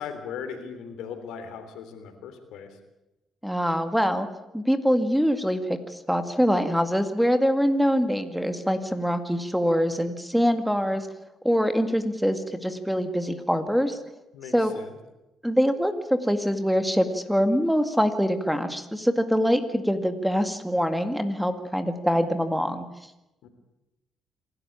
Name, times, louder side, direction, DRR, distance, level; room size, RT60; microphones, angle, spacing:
voice 1, 0.0-2.7 14.3-15.0 23.4-23.5, left 7 dB, 90° left, 8 dB, 3.3 m, -38 dB
voice 2, 3.4-4.3 4.5-11.1 11.4-14.0 14.5-14.8 15.4-22.9, equal, ahead, 8 dB, 2.1 m, -24 dB
26.5 x 13.0 x 8.8 m, 0.98 s
cardioid pair, 90°, 0 cm